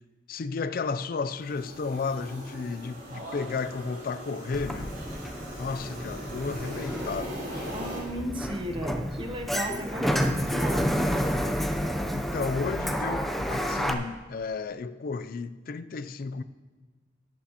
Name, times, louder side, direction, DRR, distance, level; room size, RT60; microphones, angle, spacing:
voice 1, 0.3-4.9 5.6-7.7 12.1-16.4, left 4 dB, 50° left, 0.4 m, -33 dB
sound 1, 1.3-8.0, equal, 60° right, 3.4 m, -40 dB
Sliding door, 4.5-13.9, equal, ahead, 0.6 m, -30 dB
voice 2, 7.7-11.4, equal, 30° right, 0.9 m, -35 dB
18.0 x 8.2 x 2.9 m
head